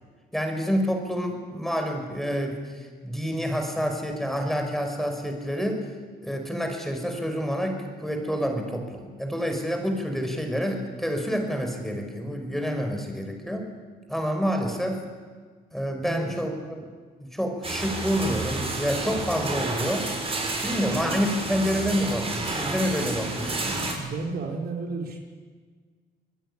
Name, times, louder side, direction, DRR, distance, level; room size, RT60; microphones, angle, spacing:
voice 1, 0.3-5.8 6.2-13.7 14.1-15.0 15.7-16.8 17.2-20.1 20.6-23.9, equal, ahead, 4 dB, 5.7 m, -28 dB
sound 1, 17.6-23.9, right 2 dB, 30° right, 7.0 m, -30 dB
voice 2, 24.0-25.2, right 3 dB, 60° right, 2 dB, 4.6 m, -32 dB
26.5 x 20.0 x 10.0 m, 1.6 s
cardioid pair, 100°, 18 cm